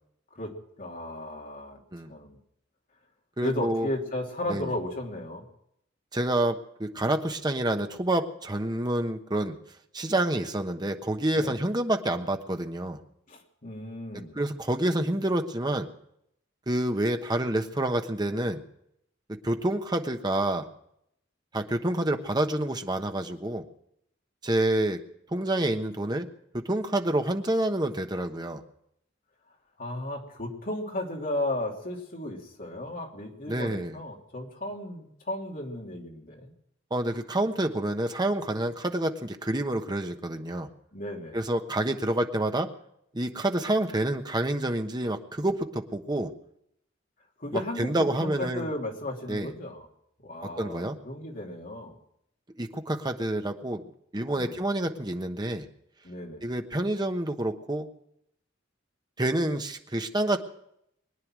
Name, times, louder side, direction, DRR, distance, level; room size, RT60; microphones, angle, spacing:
voice 1, 0.3-1.8 2.1-2.4 3.4-5.4 11.3-11.6 13.3-14.3 29.8-36.5 40.9-41.4 47.4-49.8 50.2-51.9 54.3-54.6 56.0-56.5, left 1 dB, 45° left, 0 dB, 3.0 m, -35 dB
voice 2, 3.4-3.9 4.5-4.7 6.1-9.5 9.9-13.0 14.3-15.9 16.7-18.6 19.4-20.7 21.5-23.6 24.4-25.0 25.3-26.3 26.5-28.6 33.5-34.0 36.9-40.7 41.3-42.7 43.1-46.3 47.5-48.7 49.3-49.5 50.6-51.0 52.6-53.8 54.1-55.7 56.4-57.9 59.2-60.4, right 1 dB, 20° right, 5 dB, 1.2 m, -28 dB
23.0 x 9.9 x 6.2 m, 0.76 s
head